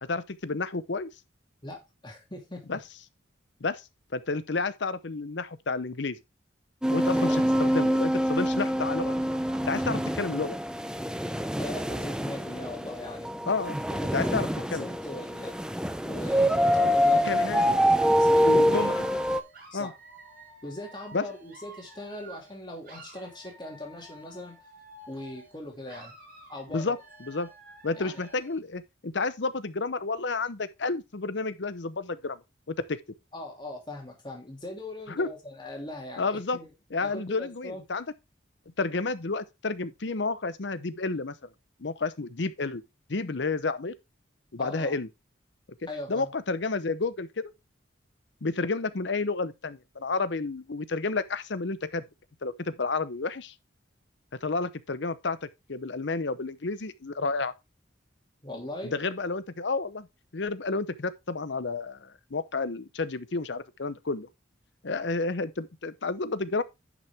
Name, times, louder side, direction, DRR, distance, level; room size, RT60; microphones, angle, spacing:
voice 1, 0.0-1.1 2.7-2.8 3.6-3.8 4.1-6.2 6.9-9.2 9.7-10.6 13.5-13.8 14.1-14.9 17.2-17.6 18.4-19.0 19.7-19.9 21.1-21.3 26.7-27.5 27.8-32.4 32.7-33.0 35.1-35.3 36.2-36.6 36.9-38.1 38.8-41.5 41.8-42.8 43.1-43.9 44.5-45.1 46.1-47.4 48.4-52.0 52.4-53.5 54.4-57.5 58.8-60.1 60.3-64.3 64.8-66.6, left 3 dB, 65° left, 0.8 m, -31 dB
voice 2, 1.6-2.8 7.2-7.5 11.6-13.3 13.6-15.5 16.0-19.1 19.7-19.9 20.6-24.5 25.1-26.1 26.5-26.9 27.9-28.2 33.3-36.7 37.0-37.8 44.6-45.0 45.9-46.3 58.4-58.9, left 1 dB, 25° left, 2.6 m, -40 dB
sound 1, 6.8-19.4, equal, 5° right, 0.5 m, -25 dB
Dog / Alarm, 16.7-22.6 22.8-25.6 25.8-28.6, right 1 dB, 45° right, 5.5 m, -51 dB
10.5 x 6.1 x 3.4 m
head